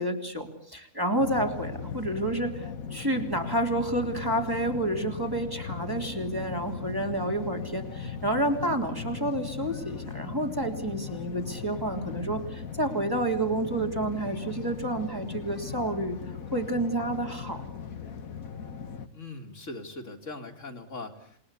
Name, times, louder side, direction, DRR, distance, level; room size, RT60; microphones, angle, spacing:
voice 1, 0.0-2.6 2.9-16.2 16.5-17.6, right 1 dB, 15° right, 3 dB, 3.3 m, -29 dB
sound 1, 1.2-19.1, left 6 dB, 80° left, 1.9 m, -38 dB
voice 2, 19.1-21.4, left 2 dB, 60° left, 4 dB, 2.7 m, -40 dB
28.5 x 20.5 x 8.4 m, 0.64 s
omnidirectional pair, 1.4 m